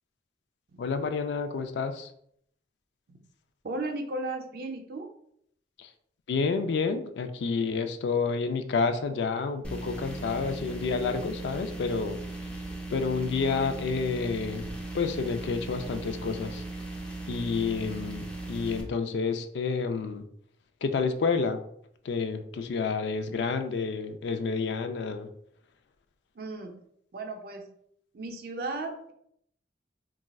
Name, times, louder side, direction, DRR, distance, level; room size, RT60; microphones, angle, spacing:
voice 1, 0.8-2.1 5.8-5.9 6.3-12.2 12.9-14.7 14.9-16.6 17.3-20.2 20.8-21.6 22.0-25.3, left 4 dB, 80° left, 8 dB, 0.3 m, -29 dB
voice 2, 3.6-5.1 26.4-26.8 27.1-27.7 28.1-29.1, right 2 dB, 60° right, 4 dB, 0.5 m, -35 dB
sound 1, 9.6-18.8, right 2 dB, 5° left, 0.4 m, -38 dB
4.0 x 2.3 x 2.3 m, 0.69 s
head